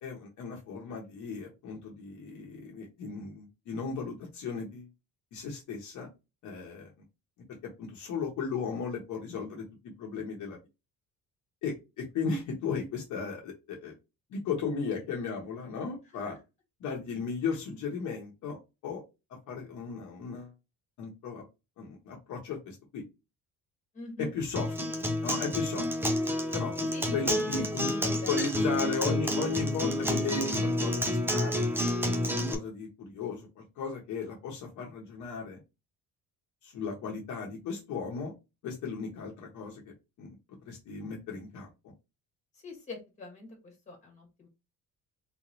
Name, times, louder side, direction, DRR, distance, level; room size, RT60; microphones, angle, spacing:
voice 1, 0.0-4.9 5.3-6.1 6.4-6.9 7.8-9.7 10.0-10.6 11.6-13.9 14.3-16.4 16.8-19.0 19.5-20.5 21.0-21.4 21.8-23.0 24.2-24.7 25.2-25.8 26.5-26.7 27.1-27.9 28.3-35.6 36.6-38.3 38.6-39.8 40.2-40.4 40.7-41.9, left 5 dB, 55° left, -1 dB, 1.0 m, -36 dB
voice 2, 23.9-24.3 26.9-27.4 28.0-28.3 42.6-44.5, left 2 dB, 20° left, 1 dB, 1.5 m, -44 dB
Acoustic guitar, 24.6-32.5, left 1 dB, 5° right, 0.4 m, -29 dB
3.6 x 3.0 x 2.6 m, 0.26 s
cardioid pair, 175°, 34 cm